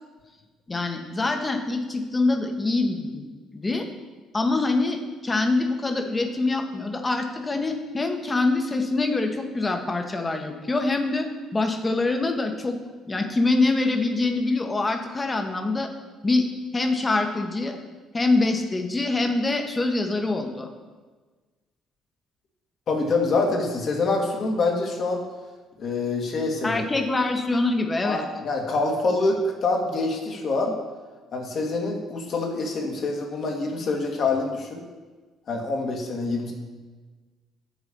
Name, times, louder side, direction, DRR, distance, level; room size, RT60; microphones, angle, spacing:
voice 1, 0.7-3.3 3.5-3.9 4.3-12.8 13.1-15.9 16.2-16.4 16.7-17.8 18.1-20.7 26.6-28.2, left 3 dB, 25° left, 5 dB, 1.4 m, -24 dB
voice 2, 22.9-25.2 25.8-26.8 28.0-30.7 31.3-34.8 35.5-36.5, left 3 dB, 50° left, 1 dB, 1.9 m, -25 dB
9.3 x 4.8 x 7.0 m, 1.3 s
figure-of-eight pair, 50°, 0 cm